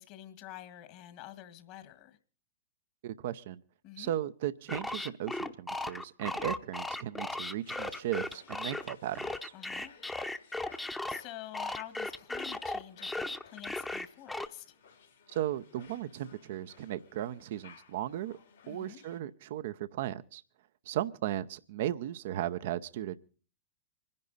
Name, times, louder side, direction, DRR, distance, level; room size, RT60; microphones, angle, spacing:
voice 1, 0.0-2.2 3.8-4.1 9.5-10.0 11.1-14.7 18.6-19.0, left 13 dB, 50° left, 1.7 m, -48 dB
voice 2, 3.0-3.6 4.0-9.5 15.3-18.4 18.7-20.4 20.9-23.2, right 12 dB, 65° right, 0.6 m, -36 dB
sound 1, 4.7-11.2 11.5-14.5, left 2 dB, 10° left, 0.8 m, -36 dB
sound 2, 7.5-19.2, left 6 dB, 90° left, 3.1 m, -58 dB
25.5 x 10.5 x 4.0 m
hypercardioid pair, 110°, 0 cm